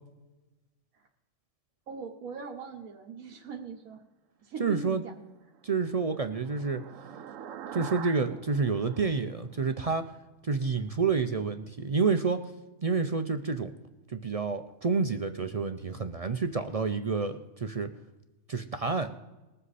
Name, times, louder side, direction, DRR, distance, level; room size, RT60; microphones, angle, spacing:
voice 1, 1.9-4.0 4.4-5.2, right 5 dB, 90° right, 2 dB, 1.5 m, -41 dB
voice 2, 4.6-5.0 5.6-6.8 7.7-10.0 10.4-12.5 12.8-13.7 14.1-17.9 18.5-19.1, right 4 dB, 55° right, 8 dB, 0.4 m, -29 dB
sound 1, 5.3-10.1, right 9 dB, 70° right, 1.0 m, -45 dB
20.5 x 7.7 x 4.1 m, 1.1 s
omnidirectional pair, 1.4 m